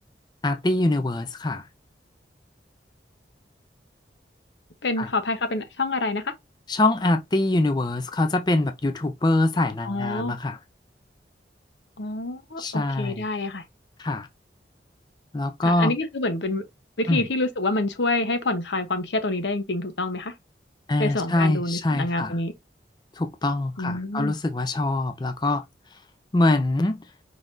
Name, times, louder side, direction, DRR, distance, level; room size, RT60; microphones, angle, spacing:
voice 1, 0.4-1.7 5.0-5.1 6.7-10.6 12.6-13.3 14.0-14.3 15.3-15.9 17.1-17.2 20.9-22.4 23.1-25.6 26.3-27.0, left 2 dB, 25° left, 0.4 m, -24 dB
voice 2, 4.8-6.3 9.8-10.3 12.0-13.6 15.6-16.6 17.0-20.3 21.0-22.5 23.8-24.3, left 2 dB, 80° left, 0.9 m, -27 dB
4.9 x 3.9 x 2.6 m
head